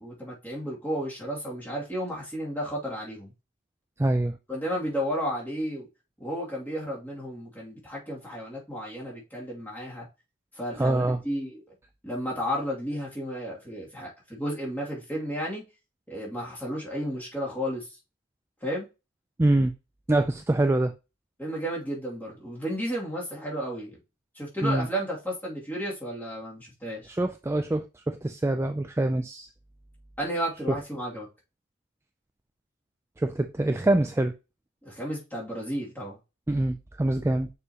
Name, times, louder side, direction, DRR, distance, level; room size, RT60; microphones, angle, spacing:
voice 1, 0.0-3.3 4.5-5.9 6.2-10.1 10.6-11.6 12.0-15.6 16.1-17.8 18.6-18.9 21.4-24.0 24.4-27.1 30.2-31.3 34.8-36.2, equal, 10° left, 2.3 m, -33 dB
voice 2, 4.0-4.4 10.8-11.2 19.4-19.7 20.1-20.9 24.6-24.9 27.1-29.5 30.7-30.8 33.2-34.3 36.5-37.5, right 1 dB, 15° right, 0.3 m, -25 dB
6.7 x 4.9 x 2.8 m
head